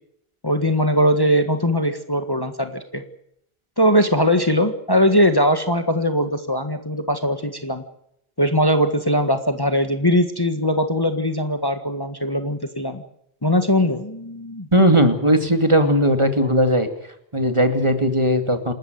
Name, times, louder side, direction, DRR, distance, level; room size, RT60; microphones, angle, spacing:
voice 1, 0.4-3.0 3.8-7.8 8.4-13.0 13.4-14.7, equal, 20° left, 7 dB, 1.7 m, -20 dB
voice 2, 14.7-16.9 17.3-18.7, equal, 25° right, 7 dB, 2.6 m, -17 dB
28.0 x 13.5 x 9.4 m, 0.75 s
omnidirectional pair, 1.1 m